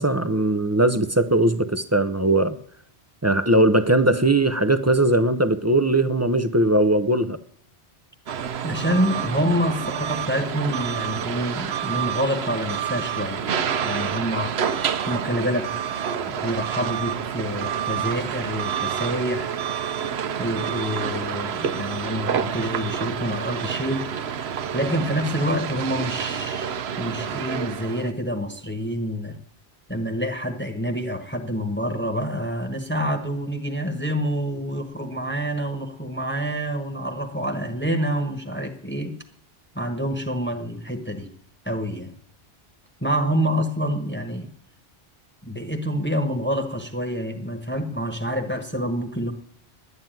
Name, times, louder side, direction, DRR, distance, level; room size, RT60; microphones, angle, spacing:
voice 1, 0.0-2.6 3.2-7.4, right 1 dB, 20° right, 0.4 m, -20 dB
sound 1, 8.3-28.1, right 8 dB, 75° right, 1.0 m, -28 dB
voice 2, 8.6-14.6 15.1-15.7 16.3-19.5 20.4-24.1 24.7-26.7 27.0-29.4 29.9-39.2 39.7-41.3 41.6-42.1 43.0-44.5 45.4-49.3, equal, 10° left, 1.2 m, -27 dB
11.0 x 9.6 x 9.0 m
omnidirectional pair, 1.1 m